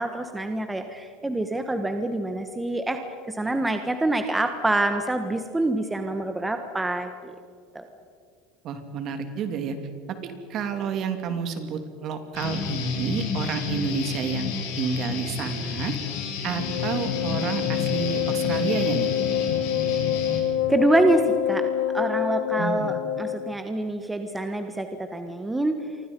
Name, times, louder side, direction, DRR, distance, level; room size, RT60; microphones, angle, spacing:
voice 1, 0.0-3.0 3.3-7.4 7.7-7.9 20.7-21.6 21.9-25.7, right 2 dB, 10° right, 7 dB, 1.3 m, -26 dB
voice 2, 8.6-9.8 10.2-16.0 16.4-19.1 22.6-22.9, right 6 dB, 45° right, 7 dB, 2.8 m, -30 dB
Guitar, 12.3-20.4, left 6 dB, 75° left, 7.7 m, -31 dB
Wind instrument woodwind instrument, 16.5-23.6, left 10 dB, 90° left, 0.8 m, -27 dB
29.0 x 25.0 x 5.4 m, 2.3 s
supercardioid pair, 135°, 0 cm